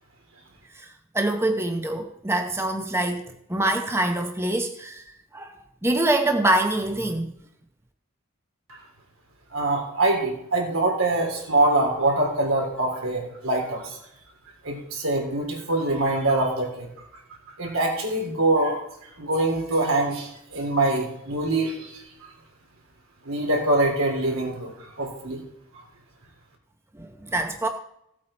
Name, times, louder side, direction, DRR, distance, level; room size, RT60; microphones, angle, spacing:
voice 1, 0.7-3.2 3.5-5.5 5.8-7.4 26.9-27.7, right 1 dB, 10° right, 5 dB, 0.8 m, -25 dB
voice 2, 9.5-14.0 14.6-16.9 17.6-22.0 23.2-25.4, right 2 dB, 80° right, 0 dB, 3.3 m, -24 dB
15.5 x 8.5 x 4.4 m, 0.78 s
head